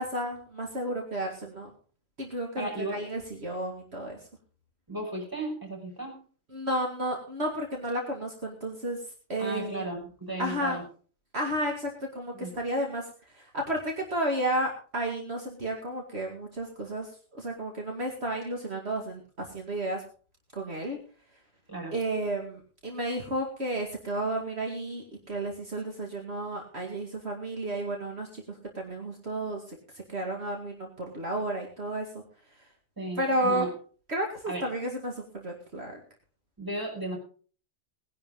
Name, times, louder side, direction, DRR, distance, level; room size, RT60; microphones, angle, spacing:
voice 1, 0.0-1.7 2.2-4.2 6.5-9.0 9.3-9.9 10.4-10.8 11.3-13.1 13.3-20.0 20.5-21.0 21.9-32.1 33.2-33.7 34.1-36.0, right 1 dB, 60° right, 1 dB, 2.5 m, -32 dB
voice 2, 2.6-3.0 4.9-6.2 9.4-10.8 12.3-12.5 21.7-22.0 33.0-33.7 34.5-34.7 36.6-37.2, right 1 dB, 15° right, -2 dB, 6.0 m, -35 dB
19.5 x 11.0 x 3.8 m, 0.42 s
omnidirectional pair, 1.2 m